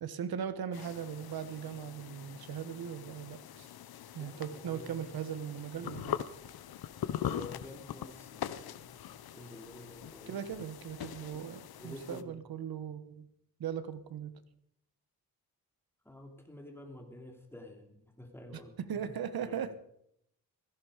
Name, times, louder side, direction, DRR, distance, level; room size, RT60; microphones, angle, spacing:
voice 1, 0.0-3.7 4.1-6.2 10.3-13.3 13.6-14.4 18.5-19.9, right 8 dB, 75° right, 13 dB, 1.2 m, -39 dB
sound 1, 0.7-12.2, left 10 dB, 80° left, 0.8 m, -42 dB
voice 2, 4.2-5.1 7.2-9.0 9.3-10.4 11.3-11.4 11.8-12.3 16.0-18.7 19.4-19.6, left 1 dB, 5° left, 2 dB, 2.8 m, -49 dB
16.5 x 14.5 x 5.0 m, 0.74 s
wide cardioid pair, 130°, 36 cm